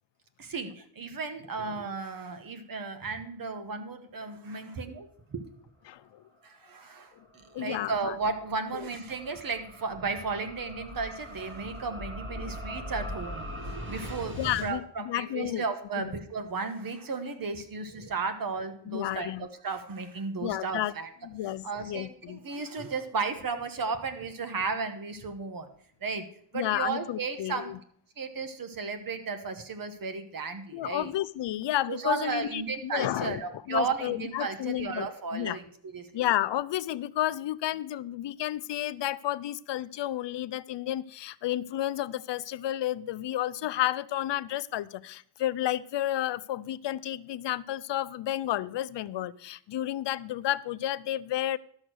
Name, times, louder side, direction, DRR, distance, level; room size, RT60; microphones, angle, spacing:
voice 1, 0.4-5.4 6.4-21.1 21.6-25.7 26.0-26.3 26.5-27.7 28.2-31.1 31.9-35.7 35.9-36.1, right 4 dB, 50° right, 9 dB, 1.3 m, -34 dB
voice 2, 5.9-6.2 7.5-8.1 8.8-8.9 12.4-12.5 14.4-15.7 16.0-16.1 18.9-19.5 20.4-20.9 21.2-22.4 26.5-27.8 30.7-35.6 36.1-51.6, left 13 dB, 70° left, 17 dB, 0.6 m, -31 dB
sound 1, 6.9-14.7, equal, 25° right, 2.3 m, -41 dB
12.0 x 6.5 x 6.2 m, 0.63 s
wide cardioid pair, 130°, 44 cm